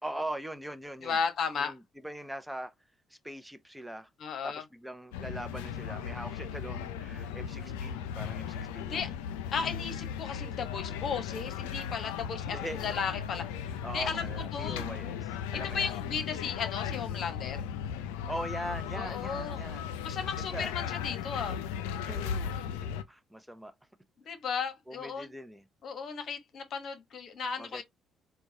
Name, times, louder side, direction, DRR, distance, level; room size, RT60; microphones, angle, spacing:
voice 1, 0.0-1.2 1.6-2.7 3.1-4.1 4.4-9.1 12.5-13.0 13.8-16.0 18.3-19.9 20.4-20.8 22.0-23.7 24.9-25.7 27.6-27.8, right 1 dB, 5° right, 0.7 m, -41 dB
voice 2, 1.0-1.7 4.2-4.6 8.8-9.1 9.5-13.4 13.9-14.2 14.5-14.8 15.7-17.7 18.9-19.6 20.0-21.6 24.2-25.3 25.8-27.8, left 6 dB, 60° left, 1.1 m, -35 dB
sound 1, 5.1-23.0, left 8 dB, 85° left, 0.4 m, -37 dB
4.5 x 2.3 x 2.8 m
hypercardioid pair, 55°, 0 cm